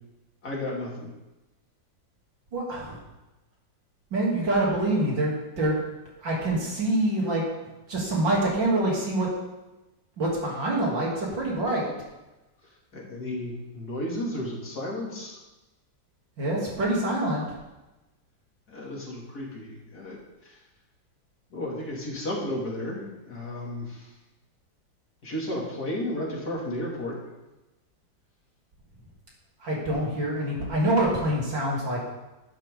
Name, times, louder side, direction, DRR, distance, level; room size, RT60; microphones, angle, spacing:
voice 1, 0.4-1.1 12.9-15.4 18.7-20.2 20.4-20.6 21.5-24.1 25.2-27.2, left 1 dB, 55° left, -4 dB, 3.3 m, -33 dB
voice 2, 2.5-3.0 4.1-5.8 6.2-7.4 7.9-9.3 10.2-11.9 16.4-17.5 29.6-32.0, right 1 dB, 80° right, -4 dB, 3.9 m, -25 dB
12.0 x 11.5 x 3.8 m, 1.0 s
omnidirectional pair, 2.0 m